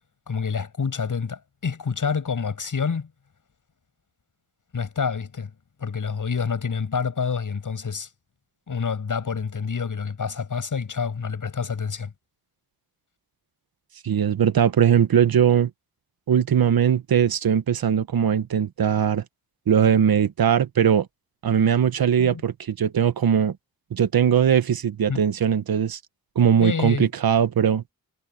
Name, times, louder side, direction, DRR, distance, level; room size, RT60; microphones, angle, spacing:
voice 1, 0.3-3.1 4.7-5.5 5.8-8.1 8.7-12.1 22.2-22.4 25.1-25.2 26.6-27.1, left 5 dB, 60° left, 7.9 m, -27 dB
voice 2, 14.0-15.7 16.3-19.2 19.7-21.1 21.4-23.6 23.9-26.0 26.3-27.8, right 8 dB, 75° right, 1.4 m, -20 dB
wide cardioid pair, 100°, 36 cm